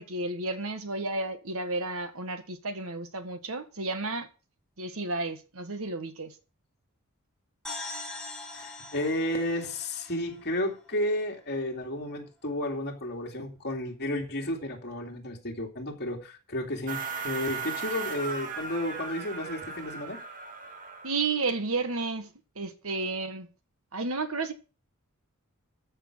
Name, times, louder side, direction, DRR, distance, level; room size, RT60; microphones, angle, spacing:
voice 1, 0.0-4.3 4.8-6.3 21.0-22.3 22.5-23.5 23.9-24.5, right 3 dB, 65° right, 1.7 m, -32 dB
sound 1, 7.6-11.3, left 2 dB, 5° left, 4.1 m, -42 dB
voice 2, 8.5-20.2, left 1 dB, 50° left, 2.8 m, -32 dB
sound 2, 16.9-21.4, right 5 dB, 40° right, 2.0 m, -37 dB
14.0 x 6.6 x 6.3 m
head